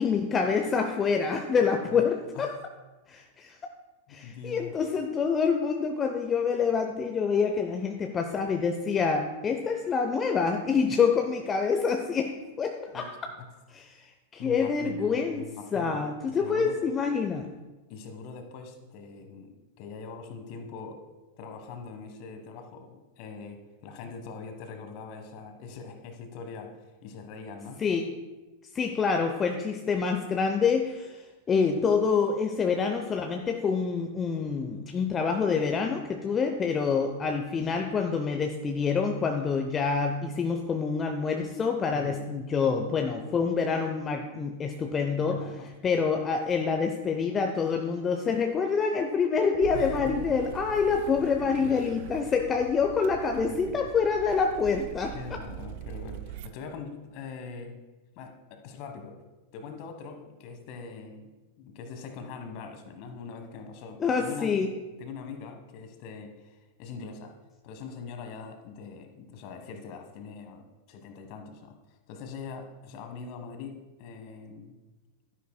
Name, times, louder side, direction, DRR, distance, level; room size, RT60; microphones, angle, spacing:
voice 1, 0.0-2.6 3.1-3.5 4.1-13.1 13.7-14.0 14.3-15.4 15.7-17.5 27.8-28.1 28.7-55.2 64.0-64.7, left 5 dB, 25° left, 4 dB, 0.6 m, -27 dB
voice 2, 4.1-4.8 12.9-13.1 13.4-13.5 14.4-16.0 16.3-16.8 17.9-21.0 21.4-26.7 27.0-27.8 41.9-42.2 45.1-45.7 49.7-50.4 53.3-53.8 55.1-57.8 58.2-59.1 59.5-61.3 61.6-64.5 65.0-67.3 67.6-71.8 72.1-74.8, left 5 dB, 45° left, 5 dB, 1.3 m, -42 dB
sound 1, 49.6-56.5, right 12 dB, 50° right, 0.4 m, -42 dB
12.0 x 10.0 x 2.2 m, 1.1 s
figure-of-eight pair, 95°, 0 cm